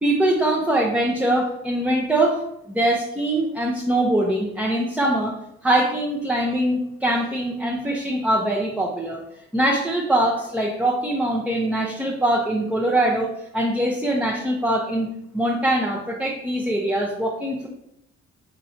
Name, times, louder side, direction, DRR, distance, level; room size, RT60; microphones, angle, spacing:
voice 1, 0.0-2.4 2.7-5.4 5.6-9.2 9.5-17.7, right 1 dB, 5° right, -2 dB, 0.6 m, -22 dB
4.4 x 2.6 x 4.1 m, 0.79 s
cardioid pair, 90°, 30 cm